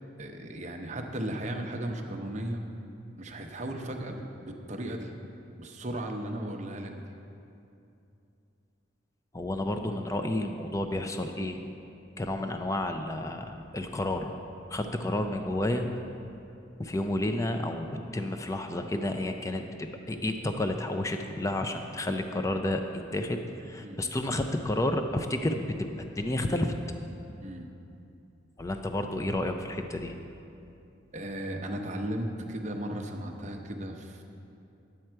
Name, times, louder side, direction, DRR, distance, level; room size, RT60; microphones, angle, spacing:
voice 1, 0.2-2.6 3.2-5.1 5.6-7.1 23.8-24.1 27.4-27.7 31.1-34.2, right 1 dB, 35° right, 3 dB, 0.7 m, -36 dB
voice 2, 9.3-11.6 12.2-14.3 14.7-15.9 16.8-17.9 18.1-19.6 20.1-22.8 23.1-26.7 28.6-30.1, left 1 dB, 15° left, 6 dB, 0.4 m, -30 dB
10.5 x 7.6 x 4.5 m, 2.7 s
head